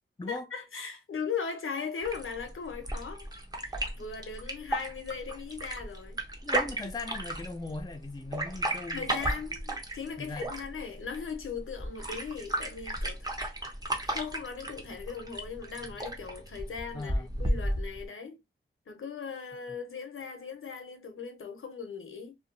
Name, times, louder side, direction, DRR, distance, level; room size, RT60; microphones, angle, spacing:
voice 1, 0.3-3.3 3.6-6.2 8.9-13.4 14.0-18.4 18.9-22.4, left 6 dB, 75° left, 0.7 m, -38 dB
sound 1, 2.0-18.0, right 1 dB, 20° right, 0.7 m, -35 dB
voice 2, 6.4-9.3 10.2-10.5 16.9-17.3, left 3 dB, 20° left, 0.4 m, -39 dB
2.6 x 2.3 x 2.5 m
wide cardioid pair, 55°, 21 cm